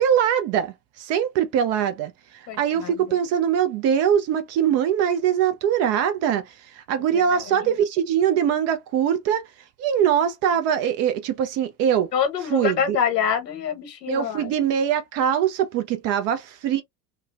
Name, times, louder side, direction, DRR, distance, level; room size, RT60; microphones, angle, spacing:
voice 1, 0.0-2.1 2.6-9.4 9.8-12.1 12.5-13.0 14.1-16.8, right 9 dB, 35° right, 0.4 m, -22 dB
voice 2, 2.5-2.9 7.1-7.7 12.1-14.5, left 8 dB, 85° left, 1.1 m, -26 dB
3.0 x 2.0 x 2.2 m
hypercardioid pair, 85°, 48 cm